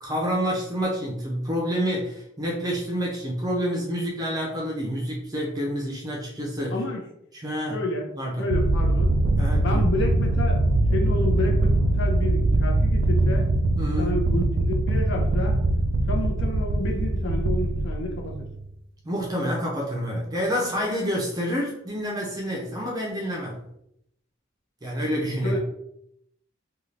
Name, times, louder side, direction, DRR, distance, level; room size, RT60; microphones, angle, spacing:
voice 1, 0.0-6.8 7.3-7.8 8.1-8.5 9.4-9.8 13.8-14.1 19.0-23.6 24.8-25.6, equal, 20° right, -3 dB, 0.5 m, -28 dB
voice 2, 6.7-7.0 7.7-9.1 9.6-13.5 14.0-15.6 16.1-18.5 25.3-25.6, left 2 dB, 65° left, 1 dB, 0.7 m, -30 dB
sound 1, 8.5-18.6, right 1 dB, 70° right, 0.3 m, -22 dB
2.6 x 2.3 x 3.2 m, 0.77 s
head